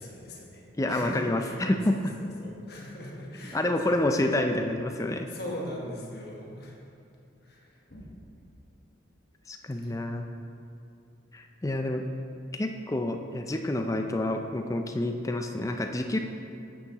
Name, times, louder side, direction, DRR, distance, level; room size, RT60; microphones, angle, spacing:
voice 1, 0.0-1.7 1.9-4.0 5.3-6.8 7.4-8.4 9.8-10.2, left 1 dB, 55° left, -2 dB, 1.3 m, -41 dB
voice 2, 0.8-2.1 3.5-5.3 9.5-10.3 11.3-12.0 12.5-16.2, left 1 dB, 15° left, 5 dB, 0.4 m, -28 dB
9.4 x 8.7 x 3.0 m, 2.5 s
head